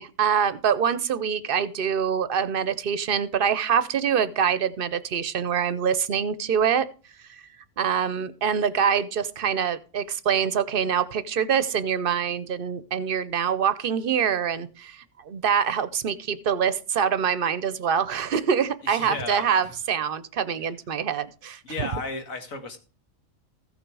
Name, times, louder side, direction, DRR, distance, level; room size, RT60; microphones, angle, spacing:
voice 1, 0.0-6.9 7.8-21.9, right 7 dB, 50° right, 15 dB, 0.7 m, -25 dB
voice 2, 18.8-19.7 21.6-22.8, left 3 dB, 80° left, 6 dB, 2.0 m, -34 dB
15.0 x 6.5 x 4.7 m, 0.35 s
omnidirectional pair, 1.4 m